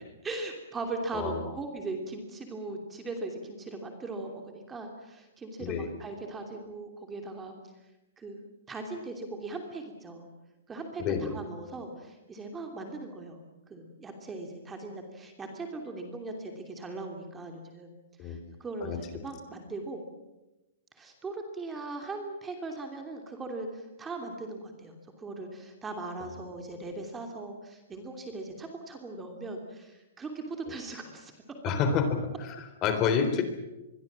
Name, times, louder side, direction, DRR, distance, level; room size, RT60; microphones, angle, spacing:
voice 1, 0.2-7.5 8.2-10.3 10.7-13.4 13.7-17.9 18.2-20.0 20.9-31.3, right 2 dB, 10° right, 3 dB, 2.9 m, -39 dB
voice 2, 5.6-5.9 11.0-11.3 18.2-18.4 18.8-19.0 31.6-32.1 32.4-33.4, left 6 dB, 25° left, 8 dB, 3.7 m, -28 dB
26.0 x 22.5 x 7.5 m, 1.0 s
hypercardioid pair, 160°, 0 cm